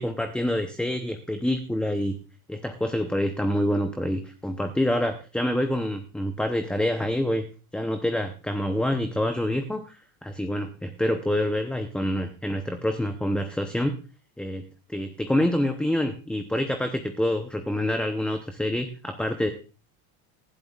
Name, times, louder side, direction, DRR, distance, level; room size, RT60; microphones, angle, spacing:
voice 1, 0.0-2.1 2.5-7.4 7.7-14.0 14.4-14.6 14.9-19.5, left 1 dB, 5° left, 7 dB, 0.8 m, -27 dB
18.5 x 12.0 x 2.4 m, 0.34 s
supercardioid pair, 135°, 40 cm